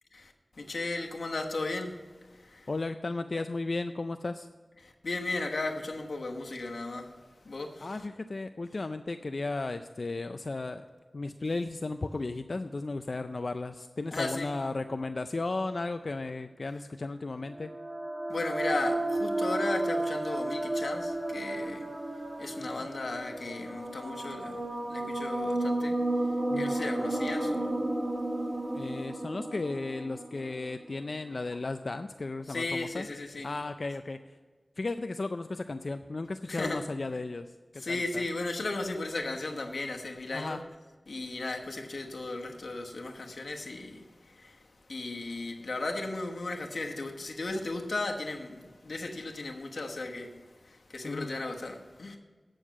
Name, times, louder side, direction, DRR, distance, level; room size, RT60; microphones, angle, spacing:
voice 1, 0.1-2.0 2.3-2.7 4.8-7.1 7.4-8.0 14.1-14.5 18.3-21.9 22.4-24.6 24.9-27.8 32.5-33.5 36.5-36.8 37.8-40.6 41.1-44.6 44.9-50.3 50.6-52.2, left 2 dB, 90° left, 1.1 m, -36 dB
voice 2, 2.7-4.5 7.8-10.9 11.1-17.7 22.6-22.9 26.5-26.7 28.7-33.1 33.4-34.2 34.8-38.2 40.3-40.6 51.0-51.3, left 3 dB, 65° left, 0.4 m, -35 dB
sound 1, 17.5-31.2, right 1 dB, 60° right, 1.7 m, -33 dB
9.1 x 6.4 x 7.4 m
wide cardioid pair, 55°, 0 cm